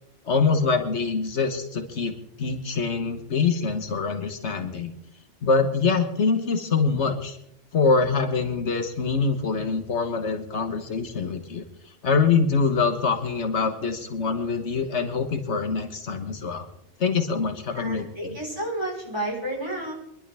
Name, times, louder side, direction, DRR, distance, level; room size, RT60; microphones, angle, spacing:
voice 1, 0.3-2.1 2.4-4.9 5.4-7.4 7.7-11.6 12.0-16.6 17.0-18.4, left 4 dB, 75° left, 7 dB, 1.6 m, -24 dB
voice 2, 17.7-19.9, right 1 dB, 20° right, -2 dB, 4.5 m, -31 dB
25.0 x 11.5 x 3.5 m, 0.76 s
omnidirectional pair, 1.2 m